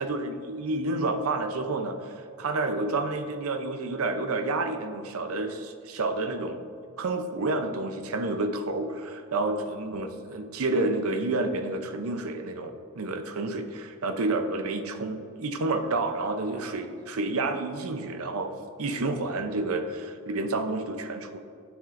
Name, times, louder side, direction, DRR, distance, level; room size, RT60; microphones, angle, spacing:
voice 1, 0.0-6.6 7.0-18.5 18.8-21.4, right 2 dB, 80° right, 7 dB, 0.6 m, -29 dB
9.0 x 7.2 x 2.6 m, 2.4 s
head